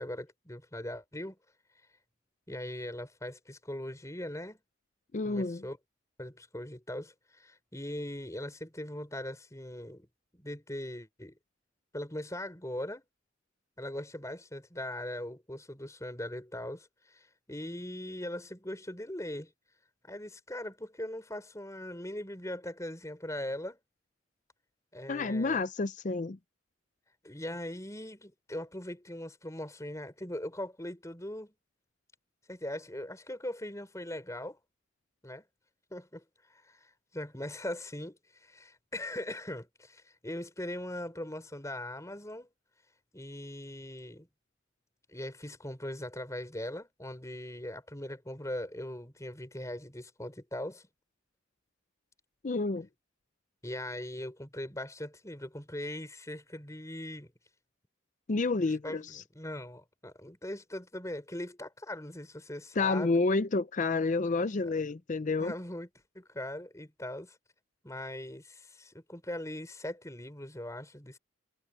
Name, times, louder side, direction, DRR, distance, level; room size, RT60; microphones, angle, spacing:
voice 1, 0.0-1.4 2.5-4.6 5.2-5.8 6.2-10.1 10.3-11.4 11.9-13.0 13.8-19.5 20.0-23.8 24.9-25.6 27.2-31.5 32.5-34.6 35.2-35.4 35.9-42.5 43.1-44.3 45.1-50.9 53.6-57.3 58.6-63.1 64.6-64.8 65.4-65.9 66.1-67.4 67.8-71.2, left 1 dB, 15° left, 4.7 m, -40 dB
voice 2, 5.1-5.6 25.1-26.4 52.4-52.9 58.3-59.2 62.8-65.5, left 3 dB, 40° left, 0.5 m, -29 dB
head